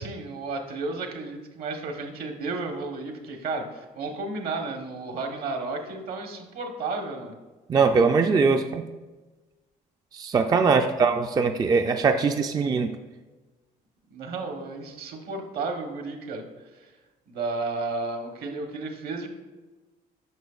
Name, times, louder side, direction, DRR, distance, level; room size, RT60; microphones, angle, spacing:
voice 1, 0.0-7.3 10.5-10.8 14.1-16.5 16.8-16.9 17.3-19.3, right 3 dB, 65° right, 4 dB, 1.2 m, -33 dB
voice 2, 7.7-8.8 10.1-12.9, right 5 dB, 25° right, 6 dB, 0.3 m, -21 dB
9.2 x 6.2 x 2.4 m, 1.2 s
cardioid pair, 110°, 17 cm